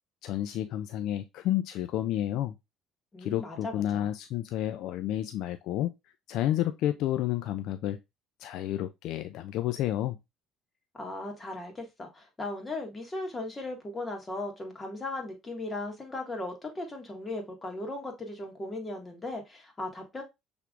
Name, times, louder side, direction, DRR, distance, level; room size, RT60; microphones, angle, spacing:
voice 1, 0.2-2.6 3.2-5.9 6.3-8.0 8.4-10.2, left 12 dB, 70° left, 0.3 m, -30 dB
voice 2, 3.1-4.1 10.9-20.2, left 2 dB, 25° left, 1.7 m, -37 dB
5.9 x 3.5 x 2.4 m
supercardioid pair, 90°, 0 cm